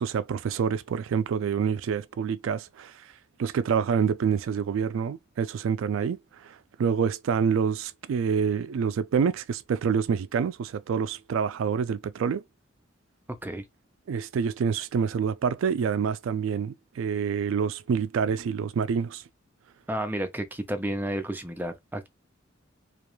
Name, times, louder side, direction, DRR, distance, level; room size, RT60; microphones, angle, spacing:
voice 1, 0.0-2.9 3.4-12.4 14.1-19.2, right 6 dB, 75° right, 0.3 m, -27 dB
voice 2, 19.9-22.1, right 1 dB, 10° right, 0.4 m, -31 dB
2.4 x 2.2 x 3.0 m
head